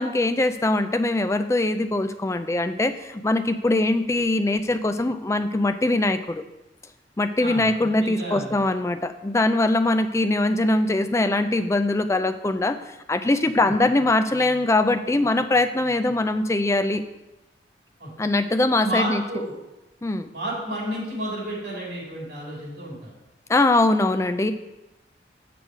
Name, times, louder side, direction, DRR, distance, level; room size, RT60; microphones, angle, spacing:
voice 1, 0.0-6.4 7.2-12.8 13.1-17.0 18.2-19.2 20.0-20.3 23.5-24.5, left 2 dB, 15° left, 9 dB, 0.3 m, -22 dB
voice 2, 7.4-8.6 13.6-13.7 18.0-18.1 18.7-19.5 20.3-23.1, right 1 dB, 60° right, -4 dB, 3.2 m, -31 dB
6.8 x 6.3 x 4.9 m, 0.98 s
head